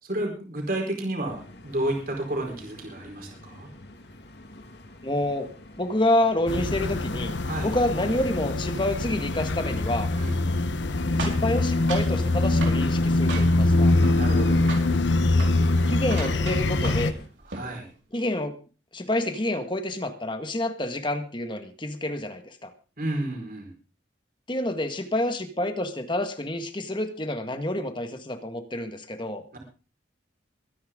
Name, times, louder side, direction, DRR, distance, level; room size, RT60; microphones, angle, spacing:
voice 1, 0.0-3.7 7.4-7.7 10.2-10.4 14.1-14.7 17.5-17.9 23.0-23.7 29.5-29.6, right 1 dB, 50° right, 1 dB, 4.7 m, -31 dB
sound 1, 1.3-17.3, left 1 dB, 65° left, 2.1 m, -48 dB
voice 2, 5.0-5.5 5.8-7.3 7.6-10.1 11.2-13.9 15.9-17.1 18.1-18.6 18.9-22.7 24.5-29.4, left 1 dB, 25° left, 7 dB, 1.7 m, -28 dB
sound 2, 6.5-17.1, left 2 dB, 80° left, 1.0 m, -23 dB
sound 3, 11.2-12.2 12.6-12.8 13.3-13.7 14.0-14.4 14.7-14.9 15.3-15.6 16.0-17.1 17.4-17.7, right 3 dB, 90° right, 4.6 m, -35 dB
23.0 x 10.0 x 3.8 m, 0.35 s
head